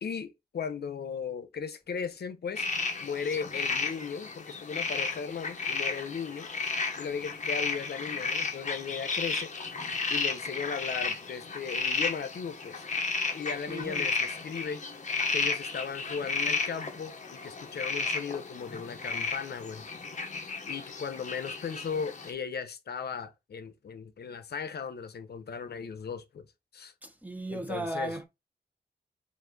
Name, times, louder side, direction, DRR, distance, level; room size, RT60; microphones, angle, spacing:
voice 1, 0.0-2.7 3.0-6.5 7.0-9.5 10.1-12.8 13.3-14.8 15.3-19.9 20.7-26.5 26.7-26.9 27.5-28.2, left 6 dB, 70° left, 0.7 m, -37 dB
sound 1, 2.5-22.3, left 4 dB, 45° left, 0.9 m, -33 dB
voice 2, 13.7-14.1 27.0-28.3, right 1 dB, 10° right, 0.8 m, -36 dB
5.1 x 2.5 x 3.8 m
wide cardioid pair, 115°, 17 cm